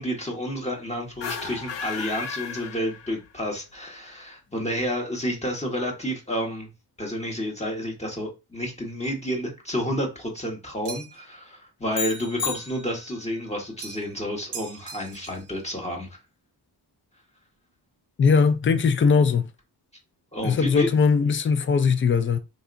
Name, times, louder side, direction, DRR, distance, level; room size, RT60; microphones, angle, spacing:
voice 1, 0.0-6.7 7.0-16.1 20.3-20.9, equal, 15° left, 1.3 m, -30 dB
sound 1, 1.1-3.4, left 7 dB, 85° left, 0.7 m, -35 dB
sound 2, 10.8-11.3 13.8-14.2 14.5-15.5, right 6 dB, 75° right, 0.8 m, -40 dB
sound 3, 11.9-13.3, left 6 dB, 55° left, 1.0 m, -33 dB
voice 2, 18.2-19.5 20.4-22.4, left 5 dB, 30° left, 0.4 m, -20 dB
4.4 x 2.6 x 2.5 m
wide cardioid pair, 120°, 42 cm